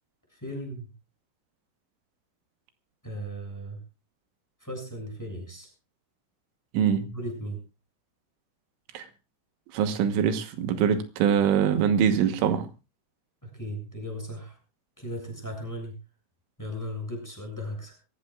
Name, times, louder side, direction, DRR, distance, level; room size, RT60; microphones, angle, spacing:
voice 1, 0.3-0.9 3.0-3.8 4.6-5.7 7.1-7.6 13.4-14.6 15.0-15.9 16.6-18.0, equal, 5° left, 1 dB, 6.9 m, -36 dB
voice 2, 6.7-7.1 9.0-9.1 9.7-12.7, right 8 dB, 85° right, 8 dB, 3.7 m, -23 dB
23.5 x 16.0 x 2.4 m, 0.30 s
omnidirectional pair, 5.4 m